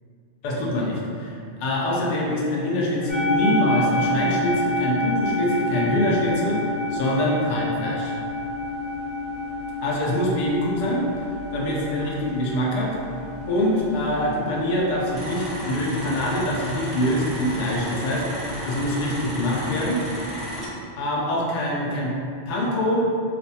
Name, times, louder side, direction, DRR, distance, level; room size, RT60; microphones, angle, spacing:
voice 1, 0.4-8.1 9.8-11.1 11.5-13.0 13.5-20.0 21.0-22.1 22.5-23.1, left 1 dB, 60° left, -4 dB, 0.5 m, -24 dB
sound 1, 3.1-19.3, left 1 dB, 80° left, 1.1 m, -29 dB
sound 2, 15.1-20.7, equal, 20° right, 0.9 m, -33 dB
3.2 x 2.1 x 2.7 m, 2.5 s
omnidirectional pair, 1.2 m